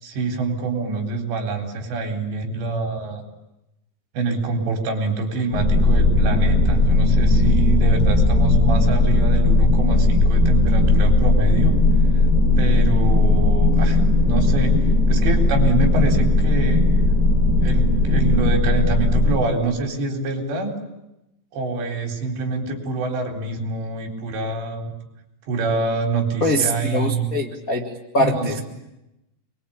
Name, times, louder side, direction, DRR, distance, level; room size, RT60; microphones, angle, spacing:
voice 1, 0.0-3.2 4.1-11.7 12.6-14.0 14.3-14.8 15.1-16.9 17.6-20.7 21.5-24.9 25.5-27.3 28.2-28.6, right 3 dB, 75° right, 3 dB, 6.2 m, -26 dB
sound 1, 5.5-19.4, left 2 dB, 20° left, 7.9 m, -17 dB
voice 2, 26.4-28.6, equal, 65° left, 1 dB, 0.8 m, -23 dB
28.5 x 23.0 x 8.8 m, 0.92 s
omnidirectional pair, 5.1 m